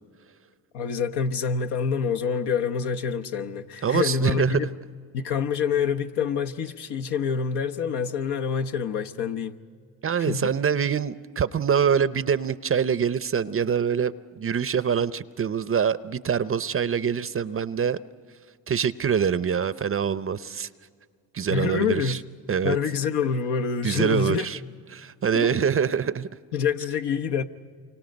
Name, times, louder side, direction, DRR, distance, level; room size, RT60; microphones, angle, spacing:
voice 1, 0.7-4.7 5.1-9.6 10.2-10.5 21.5-22.2 22.6-24.5 25.3-25.6 26.5-27.4, left 6 dB, 65° left, 1.1 m, -26 dB
voice 2, 3.8-4.7 10.0-18.0 18.7-20.7 21.3-22.2 22.5-22.8 23.8-24.6 24.9-26.3, right 7 dB, 30° right, 0.6 m, -25 dB
28.5 x 25.0 x 5.3 m
supercardioid pair, 65°, 43 cm